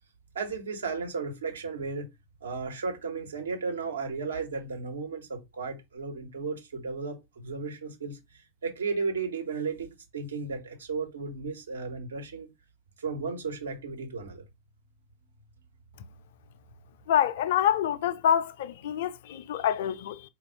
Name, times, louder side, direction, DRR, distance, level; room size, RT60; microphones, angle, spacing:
voice 1, 0.3-2.1 2.4-8.2 8.6-12.5 13.0-14.4, right 4 dB, 70° right, 1.3 m, -34 dB
voice 2, 17.1-20.2, left 10 dB, 55° left, 0.5 m, -26 dB
4.5 x 2.5 x 3.9 m
figure-of-eight pair, 90°, 0 cm